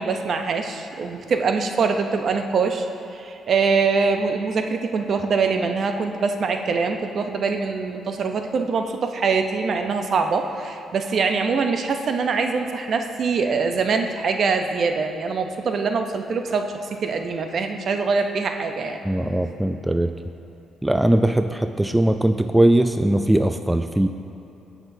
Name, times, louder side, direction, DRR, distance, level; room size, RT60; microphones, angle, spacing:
voice 1, 0.0-2.9 3.1-19.0, right 4 dB, 55° right, 5 dB, 0.7 m, -23 dB
voice 2, 19.0-20.1 20.8-24.1, right 1 dB, 10° right, 7 dB, 0.3 m, -20 dB
16.5 x 6.0 x 2.7 m, 3.0 s
cardioid pair, 90°, 0 cm